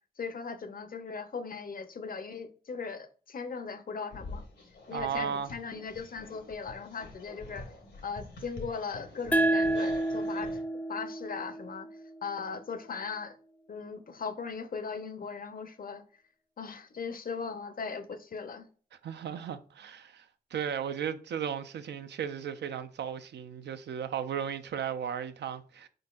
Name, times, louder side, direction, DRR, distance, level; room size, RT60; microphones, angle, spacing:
voice 1, 0.2-4.4 4.9-7.7 8.0-10.6 10.9-11.9 12.2-13.3 13.7-16.0 16.6-18.7, left 5 dB, 60° left, 0.6 m, -38 dB
sound 1, 4.1-10.6, left 2 dB, 90° left, 1.1 m, -46 dB
voice 2, 4.9-5.5 19.0-20.3 20.5-25.9, right 8 dB, 90° right, 0.4 m, -35 dB
sound 2, 9.3-12.5, right 1 dB, 10° left, 0.3 m, -30 dB
4.3 x 3.9 x 2.3 m
cardioid pair, 55°, 17 cm